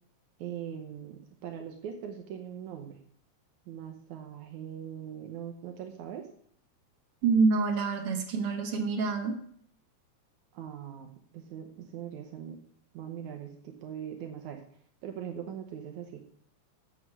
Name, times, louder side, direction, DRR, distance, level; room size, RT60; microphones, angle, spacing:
voice 1, 0.4-3.0 3.7-6.2 10.5-12.6 12.9-14.6 15.0-16.2, right 9 dB, 75° right, 4 dB, 2.3 m, -41 dB
voice 2, 7.2-9.4, right 4 dB, 55° right, 4 dB, 2.1 m, -26 dB
8.2 x 7.7 x 6.0 m, 0.62 s
omnidirectional pair, 3.5 m